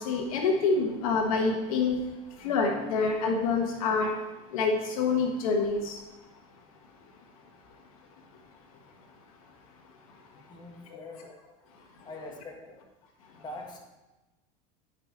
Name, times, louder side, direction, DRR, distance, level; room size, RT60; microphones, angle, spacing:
voice 1, 0.0-2.0 2.4-4.1 4.5-6.0 10.9-11.0, left 4 dB, 90° left, 2 dB, 1.6 m, -26 dB
voice 2, 10.5-11.5 12.0-12.8 13.3-13.8, left 2 dB, 25° left, 0 dB, 1.8 m, -43 dB
10.0 x 6.0 x 4.5 m, 1.1 s
supercardioid pair, 125°, 18 cm